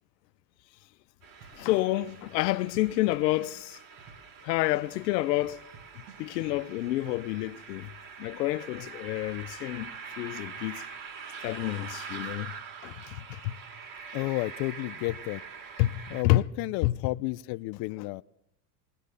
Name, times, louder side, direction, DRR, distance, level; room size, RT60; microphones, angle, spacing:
sound 1, 1.2-16.2, right 6 dB, 40° right, 3.6 m, -44 dB
sound 2, 1.4-1.8 2.1-4.4 4.7-6.5, right 6 dB, 75° right, 7.2 m, -51 dB
voice 1, 1.5-3.8 4.4-5.6 6.0-7.9 8.2-10.8 11.4-12.5 12.8-13.6 15.8-16.4 16.8-17.0, left 17 dB, 75° left, 1.1 m, -29 dB
voice 2, 14.1-15.4 16.1-18.2, left 20 dB, 50° left, 0.7 m, -32 dB
20.0 x 19.5 x 6.8 m
supercardioid pair, 115°, 50 cm